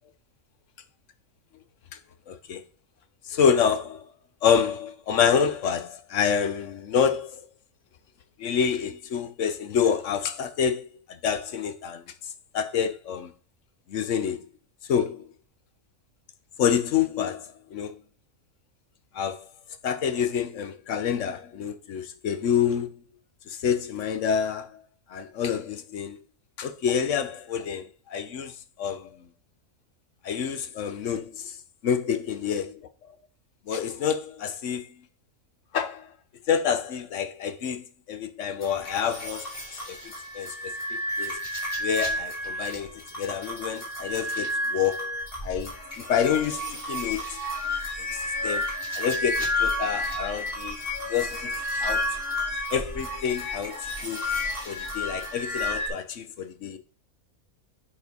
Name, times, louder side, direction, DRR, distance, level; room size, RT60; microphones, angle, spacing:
voice 1, 2.3-2.6 3.2-4.0 4.4-7.5 8.4-10.8 11.1-12.0 12.5-13.3 13.9-14.4 14.9-15.3 16.6-17.9 19.1-19.5 19.8-23.1 23.5-24.8 25.1-26.2 26.6-29.3 30.2-31.6 31.8-32.8 33.7-34.9 35.7-36.1 36.5-39.5 39.9-41.4 41.8-47.4 48.1-48.6 48.9-50.8 51.1-52.1 52.7-54.3 54.7-56.8, left 7 dB, 65° left, 1.0 m, -28 dB
sound 1, 38.6-55.9, left 1 dB, 40° left, 3.0 m, -31 dB
7.0 x 4.3 x 5.3 m
omnidirectional pair, 1.5 m